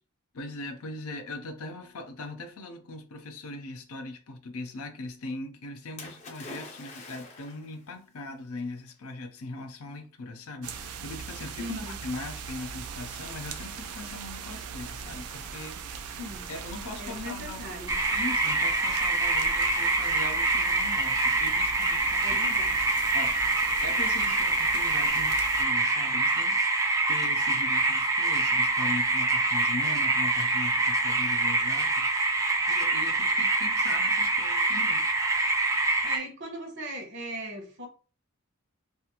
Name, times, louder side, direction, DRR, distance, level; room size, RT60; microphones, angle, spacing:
voice 1, 0.3-16.2 16.5-17.7 18.1-22.4 23.1-23.4 23.8-26.6 27.1-32.1 32.6-35.1, left 2 dB, 80° left, 0.6 m, -40 dB
Splash splatter, 6.0-7.8 8.7-8.8, left 3 dB, 30° left, 0.6 m, -44 dB
sound 1, 10.6-25.6, right 6 dB, 85° right, 0.4 m, -40 dB
voice 2, 11.6-11.9 16.2-16.6 17.0-18.0 22.2-22.8 36.0-37.9, equal, 55° right, 0.8 m, -38 dB
sound 2, 17.9-36.2, right 2 dB, 15° right, 0.4 m, -25 dB
2.4 x 2.4 x 2.8 m
head